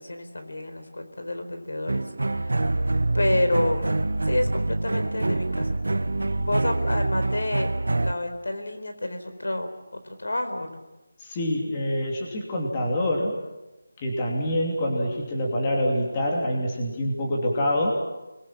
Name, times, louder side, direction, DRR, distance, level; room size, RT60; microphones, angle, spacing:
voice 1, 0.0-2.0 2.3-2.6 3.1-5.8 6.4-7.7 8.0-9.7 10.0-10.8, left 1 dB, 80° left, 7 dB, 4.2 m, -29 dB
sound 1, 1.9-8.1, right 2 dB, 75° right, 1.2 m, -25 dB
voice 2, 11.2-13.4 14.0-17.9, left 1 dB, 15° left, -1 dB, 2.8 m, -26 dB
29.5 x 22.0 x 7.5 m, 1.0 s
figure-of-eight pair, 175°, 0 cm